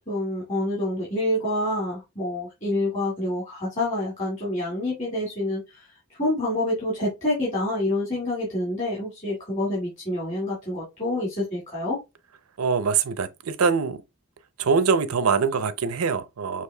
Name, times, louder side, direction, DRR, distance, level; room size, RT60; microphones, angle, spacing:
voice 1, 0.1-5.9 6.2-12.0, left 1 dB, 35° left, 1.9 m, -27 dB
voice 2, 12.6-14.0 14.6-16.6, right 5 dB, 85° right, 0.6 m, -23 dB
6.3 x 3.0 x 2.2 m
head